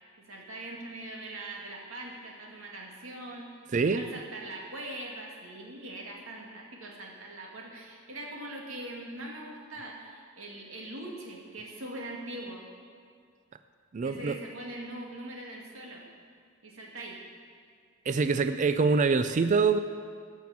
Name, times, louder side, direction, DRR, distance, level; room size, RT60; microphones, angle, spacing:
voice 1, 0.3-12.7 14.0-16.0 16.6-17.2, right 1 dB, 70° right, -1 dB, 2.2 m, -42 dB
voice 2, 3.7-4.1 13.9-14.4 18.1-19.8, right 4 dB, 35° right, 9 dB, 0.4 m, -25 dB
15.5 x 6.3 x 7.2 m, 2.1 s
head